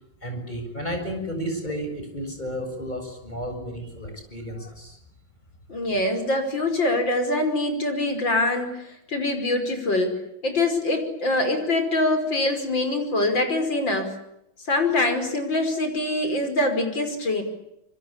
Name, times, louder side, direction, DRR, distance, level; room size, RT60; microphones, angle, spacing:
voice 1, 0.2-5.0, equal, 20° left, 4 dB, 7.5 m, -32 dB
voice 2, 5.7-14.1 14.7-17.4, left 2 dB, 70° left, 7 dB, 6.2 m, -24 dB
27.0 x 25.0 x 8.8 m, 0.81 s
omnidirectional pair, 2.1 m